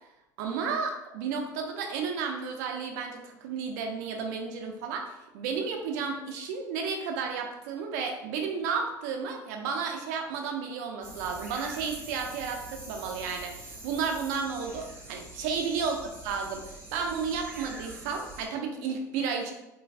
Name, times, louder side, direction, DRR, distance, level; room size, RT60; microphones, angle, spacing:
voice 1, 0.4-16.0 16.2-19.5, right 5 dB, 70° right, 3 dB, 0.5 m, -32 dB
sound 1, 11.0-18.5, right 2 dB, 25° right, 0.7 m, -45 dB
3.1 x 2.3 x 2.3 m, 0.95 s
hypercardioid pair, 75°, 10 cm